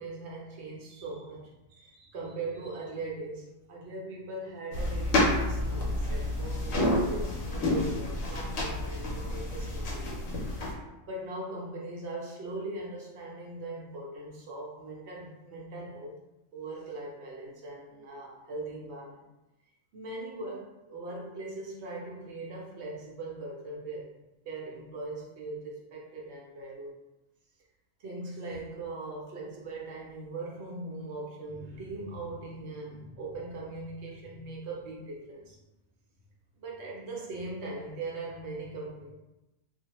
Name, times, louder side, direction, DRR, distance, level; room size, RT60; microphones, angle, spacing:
voice 1, 0.0-10.3 11.0-16.2 16.5-19.2 19.9-24.0 24.5-26.9 28.0-35.6 36.6-39.1, right 2 dB, 60° right, -2 dB, 0.8 m, -40 dB
sound 1, 4.7-10.7, left 1 dB, 65° left, 0.9 m, -29 dB
2.4 x 2.1 x 2.9 m, 0.99 s
omnidirectional pair, 1.5 m